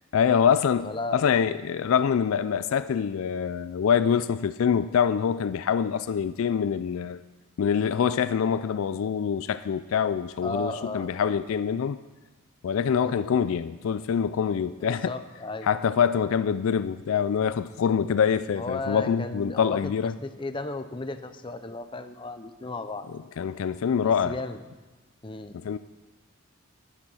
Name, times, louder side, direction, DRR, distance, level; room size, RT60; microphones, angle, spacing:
voice 1, 0.1-7.2 7.6-12.0 12.6-15.1 15.6-20.1 23.4-24.3 25.5-25.8, left 7 dB, 65° left, 14 dB, 0.3 m, -25 dB
voice 2, 0.8-1.2 10.4-11.1 13.0-13.3 14.8-15.8 18.5-19.9 20.2-23.1 24.0-24.6 25.2-25.6, left 2 dB, 20° left, 9 dB, 0.6 m, -35 dB
11.0 x 10.5 x 5.6 m, 1.2 s
head